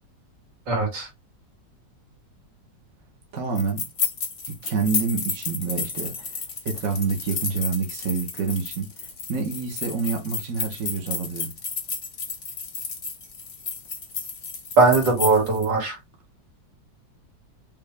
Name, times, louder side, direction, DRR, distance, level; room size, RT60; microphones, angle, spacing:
voice 1, 0.7-1.1 14.8-16.0, right 3 dB, 75° right, 2.8 m, -19 dB
voice 2, 3.3-3.8 4.5-11.6, right 5 dB, 55° right, 1.4 m, -28 dB
sound 1, 3.6-15.7, left 5 dB, 40° left, 0.9 m, -32 dB
5.6 x 2.5 x 3.3 m
omnidirectional pair, 1.9 m